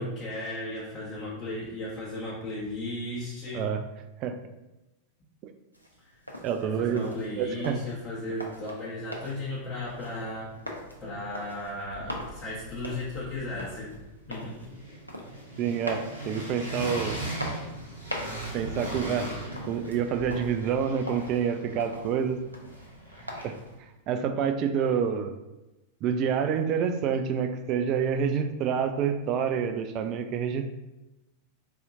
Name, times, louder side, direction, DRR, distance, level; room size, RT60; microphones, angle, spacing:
voice 1, 0.0-3.7 6.0-6.1 6.6-10.5 11.0-14.0 14.3-14.7, left 1 dB, 25° left, -8 dB, 1.0 m, -35 dB
sound 1, 5.7-23.8, equal, 90° left, 0.5 m, -43 dB
voice 2, 6.4-7.1 7.4-7.8 15.6-17.2 18.5-19.3 19.6-22.4 23.4-23.5 24.1-25.3 26.0-30.8, right 7 dB, 40° right, 8 dB, 0.3 m, -27 dB
sound 2, 9.8-9.9 10.2-11.3 11.6-23.8, right 1 dB, 85° right, 0.9 m, -40 dB
4.0 x 2.7 x 2.6 m, 1.0 s
figure-of-eight pair, 90°, 0 cm